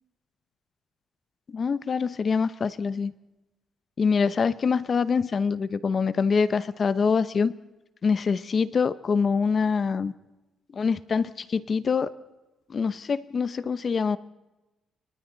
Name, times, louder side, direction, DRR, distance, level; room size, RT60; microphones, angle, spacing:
voice 1, 1.5-3.1 4.0-7.5 8.0-10.1 10.7-12.1 12.7-14.2, left 5 dB, 45° left, 15 dB, 0.9 m, -25 dB
29.0 x 24.5 x 4.0 m, 1.0 s
cardioid pair, 90°, 0 cm